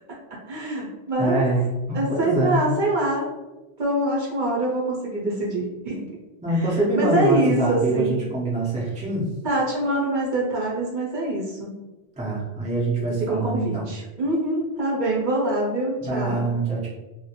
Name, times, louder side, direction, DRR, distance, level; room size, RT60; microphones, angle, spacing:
voice 1, 0.5-1.4 1.9-3.3 3.8-6.1 6.5-8.2 9.4-11.7 13.3-16.4, right 2 dB, 55° right, -4 dB, 0.7 m, -24 dB
voice 2, 1.2-2.7 6.4-9.3 12.2-13.9 16.0-16.9, right 1 dB, 10° right, -6 dB, 0.3 m, -24 dB
2.4 x 2.1 x 2.8 m, 1.1 s
omnidirectional pair, 1.1 m